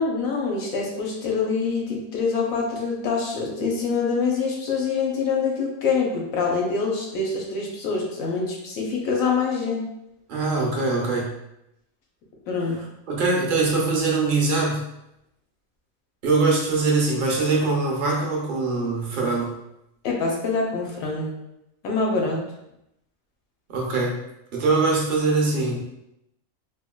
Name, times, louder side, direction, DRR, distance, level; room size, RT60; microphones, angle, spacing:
voice 1, 0.0-9.9 12.5-12.8 20.0-21.3 21.8-22.4, left 4 dB, 80° left, -1 dB, 1.1 m, -25 dB
voice 2, 10.3-11.3 13.1-14.8 16.2-19.5 23.7-24.2 24.5-25.8, right 3 dB, 50° right, -3 dB, 0.7 m, -22 dB
3.5 x 2.2 x 2.2 m, 0.83 s
omnidirectional pair, 1.5 m